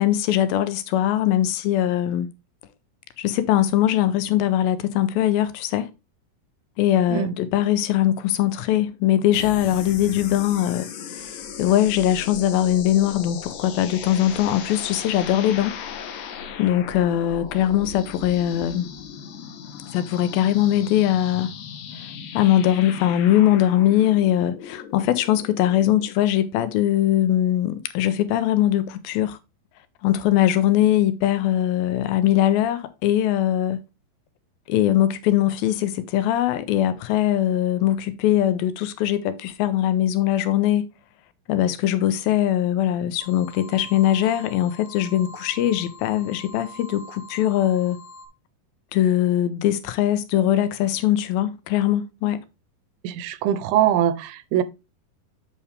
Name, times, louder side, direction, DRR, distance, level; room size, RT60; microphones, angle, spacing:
voice 1, 0.0-2.3 3.2-5.9 6.8-10.9 11.6-15.8 16.6-18.9 19.9-21.5 22.3-29.4 30.0-33.8 34.7-40.9 41.5-48.0 48.9-52.4, left 12 dB, 85° left, 2.5 m, -21 dB
sound 1, 9.3-26.1, left 7 dB, 70° left, 2.0 m, -37 dB
sound 2, 43.2-48.3, left 2 dB, 30° left, 1.5 m, -44 dB
voice 2, 53.0-54.6, right 11 dB, 90° right, 2.6 m, -22 dB
7.9 x 5.7 x 3.3 m
omnidirectional pair, 4.2 m